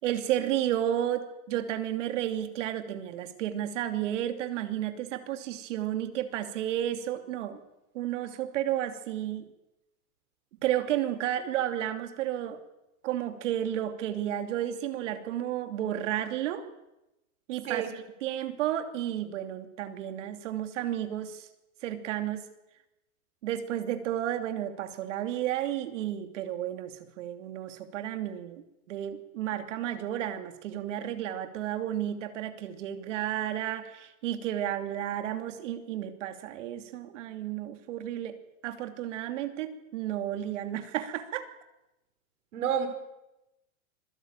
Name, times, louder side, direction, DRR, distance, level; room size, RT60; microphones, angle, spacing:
voice 1, 0.0-7.6 7.9-9.5 10.6-12.6 13.0-16.6 17.5-17.8 18.2-21.5 21.8-22.4 23.4-28.6 28.9-38.4 38.6-41.5, right 11 dB, 55° right, 8 dB, 2.8 m, -32 dB
voice 2, 42.5-42.9, right 8 dB, 85° right, 5 dB, 6.0 m, -29 dB
26.0 x 17.0 x 8.9 m, 0.93 s
supercardioid pair, 175°, 43 cm